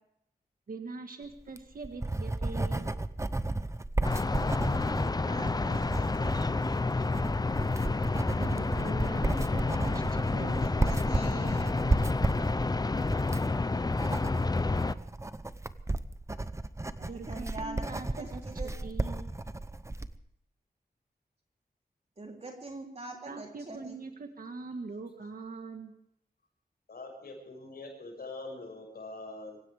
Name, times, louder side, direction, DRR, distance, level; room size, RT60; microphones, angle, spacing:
voice 1, 0.7-2.9 8.4-10.7 17.0-18.4 18.8-19.3 23.3-25.9, right 3 dB, 65° right, 5 dB, 1.7 m, -42 dB
Writing, 1.4-20.2, right 2 dB, 20° right, 0.8 m, -34 dB
sound 1, 4.0-14.9, left 3 dB, 25° left, 0.6 m, -29 dB
voice 2, 5.1-6.5 10.4-11.8 16.9-18.8 22.2-24.0, right 2 dB, 40° right, 1 dB, 3.3 m, -44 dB
voice 3, 26.9-29.6, left 2 dB, 75° left, 1 dB, 6.2 m, -43 dB
25.5 x 16.5 x 3.5 m, 0.74 s
wide cardioid pair, 120°, 16 cm